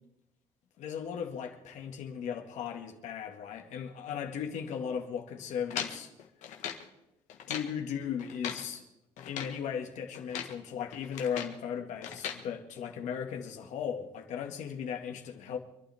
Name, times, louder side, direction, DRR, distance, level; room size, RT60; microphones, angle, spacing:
voice 1, 0.8-6.1 7.5-8.8 9.2-15.6, left 7 dB, 75° left, 2.2 m, -37 dB
sound 1, 5.7-6.9 7.3-7.8 8.2-8.7 9.2-9.6 10.1-10.6 10.9-11.6 12.0-12.4, left 8 dB, 90° left, 1.9 m, -39 dB
27.0 x 12.0 x 3.7 m
cardioid pair, 140°, 12 cm